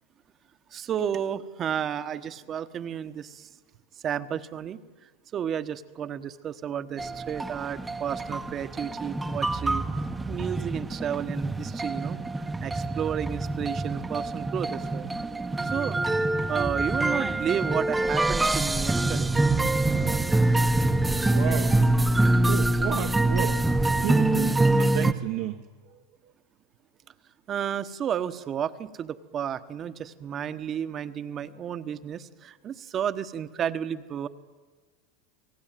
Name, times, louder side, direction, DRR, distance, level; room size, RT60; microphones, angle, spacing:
voice 1, 0.7-3.5 4.0-4.8 5.3-9.8 10.3-12.2 12.6-15.1 15.7-16.0 16.5-19.3 27.5-34.3, right 9 dB, 35° right, 1.3 m, -32 dB
sound 1, 7.0-25.1, right 2 dB, 10° right, 1.1 m, -25 dB
voice 2, 21.3-21.8 22.5-26.3, right 14 dB, 60° right, 1.2 m, -33 dB
29.5 x 19.5 x 9.2 m
supercardioid pair, 115°, 0 cm